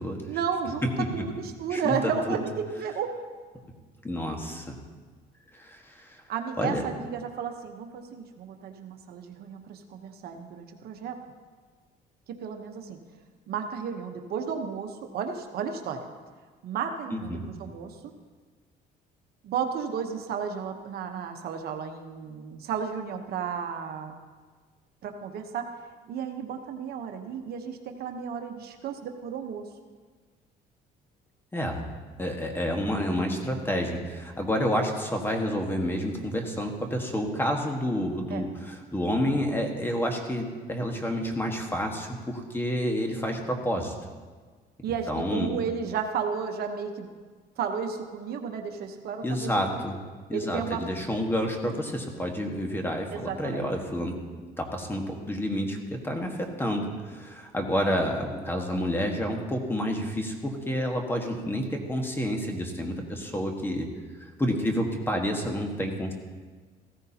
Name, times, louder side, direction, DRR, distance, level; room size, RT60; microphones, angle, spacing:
voice 1, 0.3-3.1 6.3-11.2 12.3-13.0 13.5-16.1 16.6-18.0 19.4-24.1 25.0-25.7 26.1-29.7 38.3-38.4 44.8-47.1 47.6-49.8 50.3-50.8 53.1-53.7, right 6 dB, 65° right, 5 dB, 1.1 m, -33 dB
voice 2, 1.7-2.4 4.0-4.8 5.5-6.2 6.6-6.8 17.1-17.5 31.5-31.8 32.2-43.9 45.1-45.5 49.2-49.9 50.3-54.2 54.6-63.9 64.2-66.1, equal, 15° left, 3 dB, 1.5 m, -29 dB
15.5 x 14.0 x 2.9 m, 1.5 s
cardioid pair, 110°, 17 cm